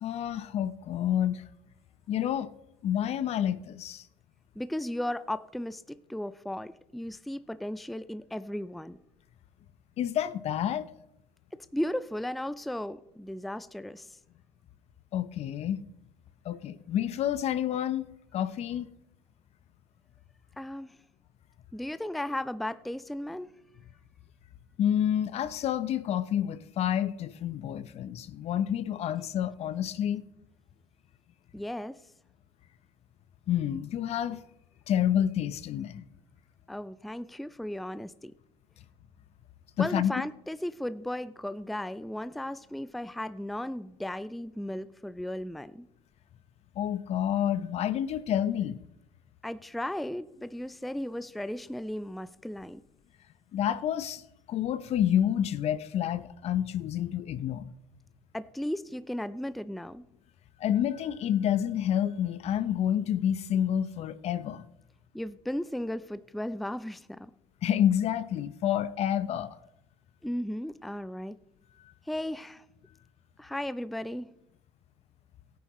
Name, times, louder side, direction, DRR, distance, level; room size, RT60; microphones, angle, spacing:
voice 1, 0.0-1.4 2.1-2.5 2.8-4.1 10.0-10.9 15.1-15.8 16.4-18.1 18.3-18.9 24.8-30.2 33.5-34.4 34.9-36.0 39.8-40.1 46.8-48.8 53.5-54.2 54.5-57.7 60.6-64.6 67.6-69.6, left 10 dB, 55° left, 0.8 m, -29 dB
voice 2, 4.6-9.0 11.7-14.2 20.6-21.0 21.7-23.5 31.5-32.0 36.7-38.3 39.8-45.9 49.4-52.8 58.3-60.0 65.1-67.3 70.2-71.4 72.1-72.6 73.4-74.3, left 1 dB, ahead, 0.4 m, -35 dB
17.0 x 9.5 x 3.1 m
hypercardioid pair, 75°, 13 cm